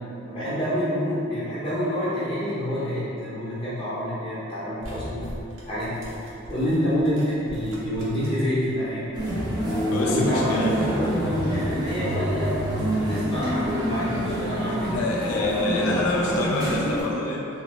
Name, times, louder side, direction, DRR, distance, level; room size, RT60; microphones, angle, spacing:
voice 1, 0.3-5.2 5.7-6.1 6.5-9.1 9.6-12.5 12.9-15.0, equal, 25° left, -11 dB, 0.7 m, -27 dB
sound 1, 4.8-8.5 8.8-9.7, equal, 65° right, 0.6 m, -41 dB
sound 2, 9.1-17.0, equal, 20° right, 0.6 m, -27 dB
voice 2, 9.9-11.0 14.9-17.5, left 2 dB, 85° left, -2 dB, 0.3 m, -27 dB
3.1 x 2.1 x 3.0 m, 2.8 s
head